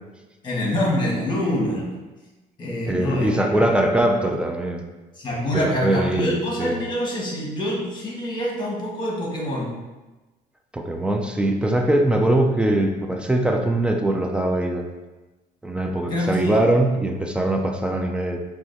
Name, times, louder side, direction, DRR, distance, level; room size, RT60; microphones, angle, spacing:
voice 1, 0.4-1.9 2.6-3.6 5.2-9.7 16.1-16.5, left 1 dB, 25° left, -4 dB, 1.3 m, -25 dB
voice 2, 2.8-4.8 5.5-6.8 10.7-14.9 15.6-18.4, right 1 dB, 5° right, 3 dB, 0.3 m, -22 dB
5.4 x 2.4 x 2.6 m, 1.2 s
cardioid pair, 110°, 17 cm